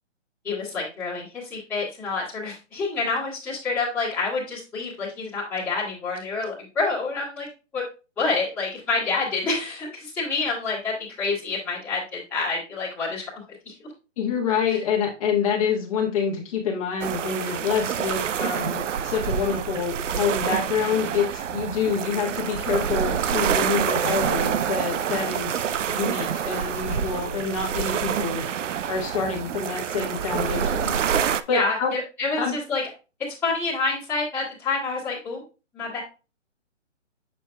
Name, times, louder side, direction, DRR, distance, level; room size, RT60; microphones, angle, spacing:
voice 1, 0.4-7.5 7.7-7.8 8.2-13.2 13.6-13.9 14.7-14.8 31.5-32.8 33.4-35.4 35.7-36.0, left 3 dB, 5° left, -13 dB, 1.7 m, -28 dB
voice 2, 14.2-28.4 28.9-31.0 31.5-31.9 32.4-32.5, left 6 dB, 30° left, -1 dB, 1.5 m, -27 dB
sound 1, 17.0-31.4, right 8 dB, 75° right, 0.5 m, -27 dB
6.6 x 6.4 x 2.2 m, 0.31 s
hypercardioid pair, 160°, 37 cm